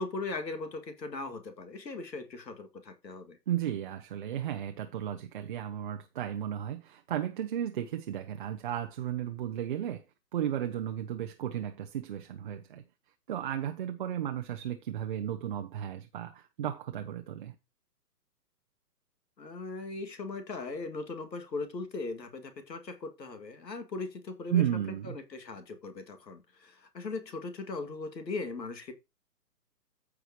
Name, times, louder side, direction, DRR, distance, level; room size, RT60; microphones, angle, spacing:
voice 1, 0.0-3.4 19.4-24.6 25.0-28.9, left 3 dB, 85° left, 2.2 m, -39 dB
voice 2, 3.5-10.0 10.3-12.8 13.3-17.5 24.5-25.2, right 10 dB, 30° right, 0.6 m, -34 dB
14.5 x 4.9 x 3.0 m
hypercardioid pair, 140°, 49 cm